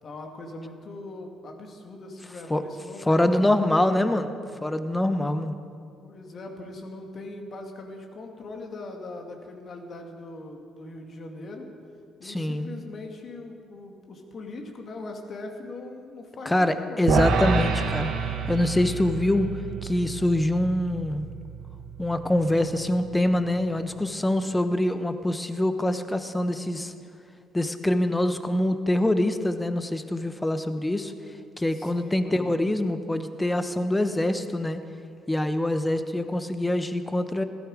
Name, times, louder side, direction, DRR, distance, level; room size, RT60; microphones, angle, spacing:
voice 1, 0.0-4.3 6.0-11.7 12.2-17.1 31.7-32.5, left 2 dB, 50° left, 2 dB, 2.3 m, -40 dB
voice 2, 3.0-4.3 4.6-5.5 12.2-12.8 16.4-18.1 18.5-19.5 19.8-21.3 22.0-26.9 27.5-31.1 31.6-34.8 35.3-37.4, left 1 dB, 15° left, 9 dB, 1.1 m, -24 dB
sound 1, 17.1-23.5, right 5 dB, 70° right, 1.5 m, -29 dB
16.0 x 13.0 x 5.0 m, 2.3 s
hypercardioid pair, 55°, 0 cm